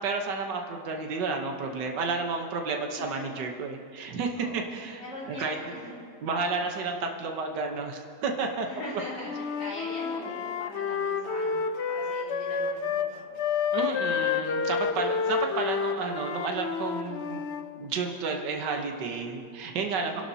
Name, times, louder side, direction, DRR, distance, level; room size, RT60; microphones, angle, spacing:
voice 1, 0.0-5.0 5.3-5.6 6.2-8.7 13.7-17.4 17.8-20.2, right 4 dB, 75° right, 2 dB, 1.7 m, -31 dB
voice 2, 2.6-3.5 4.4-5.9 8.6-13.2 15.1-15.4 20.0-20.2, left 1 dB, 85° left, -6 dB, 5.1 m, -42 dB
Wind instrument woodwind instrument, 9.2-13.1 13.4-17.7, left 6 dB, 65° left, 0.6 m, -30 dB
27.0 x 11.5 x 2.8 m, 2.2 s
omnidirectional pair, 1.9 m